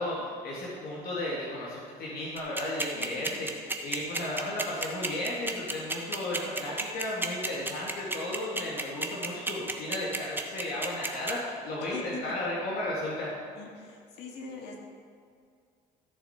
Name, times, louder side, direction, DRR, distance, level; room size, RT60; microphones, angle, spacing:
voice 1, 0.0-13.3, left 1 dB, 65° left, -6 dB, 2.1 m, -34 dB
sound 1, 2.4-11.3, right 2 dB, 10° right, 1.0 m, -31 dB
voice 2, 2.9-3.5 11.8-12.4 13.6-14.8, left 4 dB, 85° left, 1 dB, 1.9 m, -43 dB
14.0 x 6.6 x 4.3 m, 2.2 s
cardioid pair, 110°, 17 cm